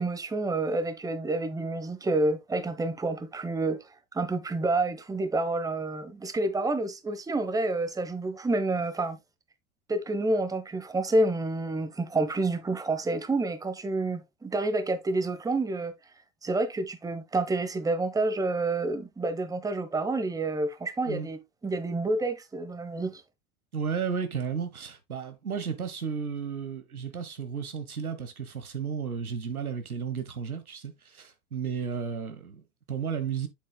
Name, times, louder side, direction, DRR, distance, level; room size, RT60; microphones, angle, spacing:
voice 1, 0.0-3.8 4.1-9.2 9.9-15.9 16.4-23.2, right 2 dB, 10° right, 1.0 m, -28 dB
voice 2, 23.7-33.5, right 6 dB, 90° right, 1.2 m, -33 dB
7.7 x 7.1 x 2.2 m
hypercardioid pair, 90°, 42 cm